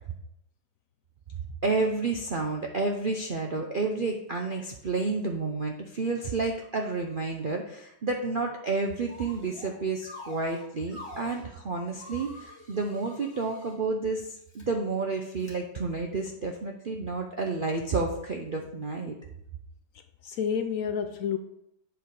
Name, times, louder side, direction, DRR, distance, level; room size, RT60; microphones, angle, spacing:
voice 1, 1.6-19.2, right 3 dB, 70° right, 2 dB, 0.4 m, -30 dB
sound 1, 9.1-9.7 10.0-11.4 11.9-13.8 14.4-14.6 15.4-15.5, left 2 dB, 15° left, 1.7 m, -46 dB
voice 2, 19.9-21.4, left 7 dB, 75° left, 8 dB, 0.7 m, -30 dB
7.9 x 4.8 x 5.3 m, 0.77 s
omnidirectional pair, 1.9 m